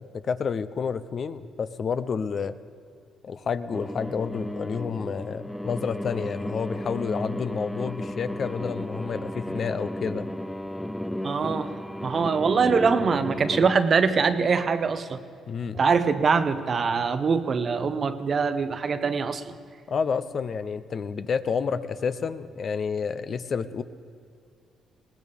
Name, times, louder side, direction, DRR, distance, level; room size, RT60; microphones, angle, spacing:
voice 1, 0.0-2.5 3.2-10.3 15.5-15.8 19.9-23.8, left 6 dB, 50° left, 13 dB, 0.6 m, -29 dB
sound 1, 3.7-13.7, left 1 dB, 5° left, 0.4 m, -34 dB
voice 2, 11.2-11.7 12.0-15.2 15.7-19.5, right 5 dB, 45° right, 10 dB, 0.9 m, -23 dB
20.5 x 18.5 x 3.6 m, 2.3 s
cardioid pair, 90°, 0 cm